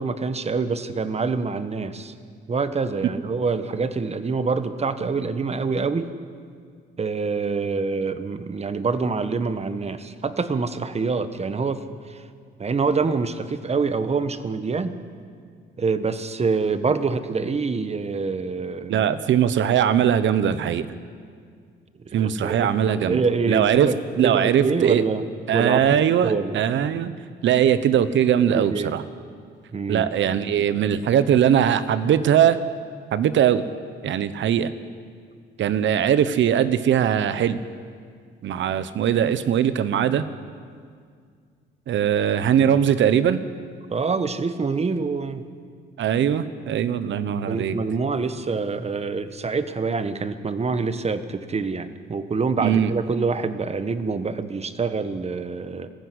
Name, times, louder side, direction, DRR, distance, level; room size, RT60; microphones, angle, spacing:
voice 1, 0.0-2.1 2.5-6.1 7.0-11.8 12.1-12.2 12.6-14.9 15.8-19.1 22.0-24.0 24.2-25.2 25.5-26.6 28.4-29.0 29.7-30.1 43.9-45.4 47.5-55.9, right 4 dB, 30° right, 11 dB, 1.3 m, -26 dB
voice 2, 18.9-20.9 22.1-23.9 24.2-25.0 25.5-27.1 27.4-29.0 29.9-32.6 33.1-33.6 34.0-34.7 35.6-37.6 38.4-40.3 41.9-43.4 46.0-47.8 52.6-52.9, right 9 dB, 70° right, 13 dB, 1.1 m, -20 dB
20.5 x 15.0 x 9.9 m, 2.1 s
cardioid pair, 90°, 20 cm